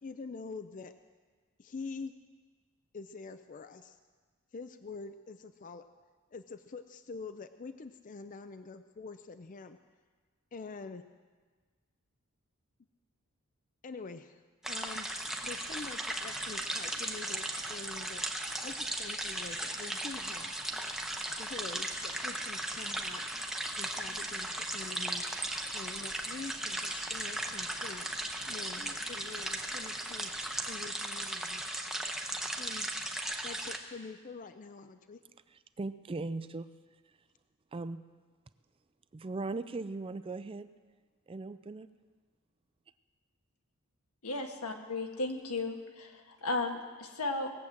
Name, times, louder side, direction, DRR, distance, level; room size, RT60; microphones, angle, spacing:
voice 1, 0.0-0.9 1.6-2.1 2.9-4.0 4.5-5.8 6.3-9.8 10.5-11.0 13.8-14.4 14.7-15.1 15.4-18.2 18.6-20.5 21.4-23.2 23.8-25.3 25.7-28.1 28.5-30.3 30.7-31.6 32.6-32.9 33.4-35.2, left 4 dB, 35° left, 10 dB, 0.4 m, -45 dB
sound 1, 14.6-33.8, right 1 dB, ahead, 0.9 m, -37 dB
sound 2, 15.2-30.8, right 3 dB, 50° right, 1.5 m, -55 dB
voice 2, 35.5-36.7 37.7-38.1 39.1-40.7 41.3-41.9, right 3 dB, 25° right, 13 dB, 0.4 m, -38 dB
voice 3, 44.2-47.5, left 2 dB, 90° left, 3 dB, 1.6 m, -35 dB
19.0 x 7.8 x 7.3 m, 1.5 s
head